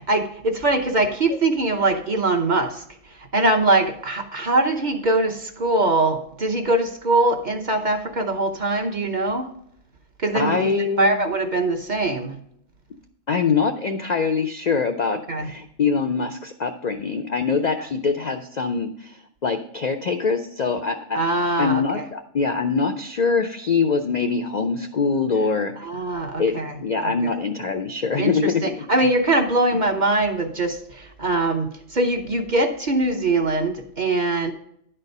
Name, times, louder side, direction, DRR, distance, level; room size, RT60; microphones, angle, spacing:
voice 1, 0.0-9.5 10.2-12.4 15.3-15.5 17.8-17.9 21.1-22.0 25.8-27.3 28.2-34.5, right 2 dB, 40° right, 3 dB, 0.9 m, -22 dB
voice 2, 10.3-11.2 13.3-21.2 21.6-25.7 26.4-26.5 26.8-28.6, left 5 dB, 55° left, 7 dB, 0.5 m, -23 dB
10.5 x 4.4 x 5.3 m, 0.69 s
omnidirectional pair, 1.3 m